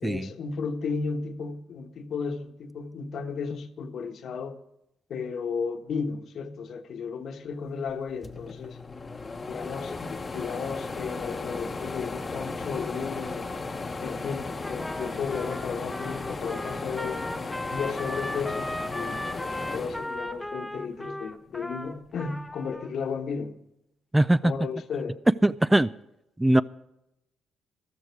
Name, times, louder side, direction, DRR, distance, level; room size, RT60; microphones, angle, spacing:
voice 1, 0.0-4.6 5.1-8.8 9.5-13.5 14.0-17.2 17.7-23.5 24.4-25.2, left 5 dB, 65° left, 1.3 m, -34 dB
sound 1, 7.9-8.0 8.2-20.8 21.3-22.4, left 3 dB, 30° left, 1.0 m, -36 dB
Trumpet, 14.6-22.9, left 1 dB, 5° left, 1.0 m, -37 dB
voice 2, 24.1-24.5 25.4-25.9 26.4-26.6, right 1 dB, 10° right, 0.4 m, -21 dB
14.0 x 13.0 x 4.7 m
cardioid pair, 90°, 0 cm